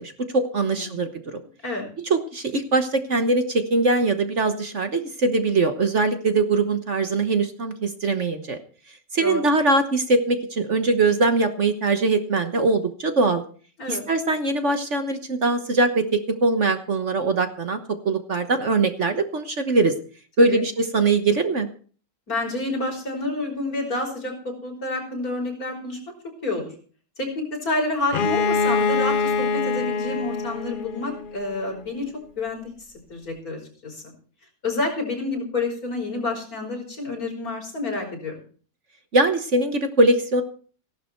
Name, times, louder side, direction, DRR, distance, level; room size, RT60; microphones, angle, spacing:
voice 1, 0.0-1.4 2.0-8.6 9.1-13.4 13.9-17.8 18.0-19.9 20.4-21.7 39.1-40.4, right 3 dB, 45° right, 8 dB, 1.4 m, -22 dB
voice 2, 0.6-1.0 1.6-1.9 9.2-9.5 13.8-14.0 20.4-20.6 22.3-26.0 26.4-26.6 27.2-32.7 33.1-34.1 34.6-38.4, left 2 dB, 55° left, 2 dB, 5.7 m, -29 dB
Bowed string instrument, 28.1-31.8, left 4 dB, 90° left, 0.4 m, -24 dB
16.5 x 12.0 x 4.5 m, 0.42 s
omnidirectional pair, 1.9 m